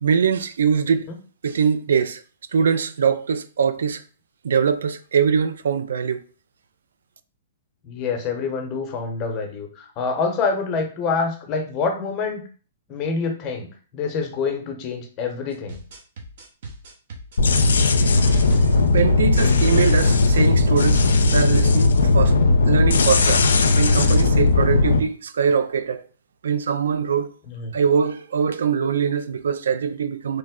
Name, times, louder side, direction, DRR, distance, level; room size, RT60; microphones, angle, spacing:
voice 1, 0.0-1.1 1.4-2.2 2.5-4.0 4.4-6.2 18.1-22.4 22.7-23.4 23.8-26.0 26.4-27.3 27.7-30.4, right 6 dB, 80° right, 0.3 m, -22 dB
voice 2, 7.8-12.4 12.9-13.7 13.9-15.8 24.9-25.0 27.5-27.7, left 4 dB, 30° left, 0.8 m, -26 dB
sound 1, 15.5-20.1 20.4-20.6 20.8-21.0 21.3-21.5 21.8-22.5, right 2 dB, 60° right, 0.9 m, -38 dB
sound 2, 17.4-25.0, left 3 dB, 85° left, 0.4 m, -17 dB
3.1 x 2.1 x 3.6 m
hypercardioid pair, 135°, 0 cm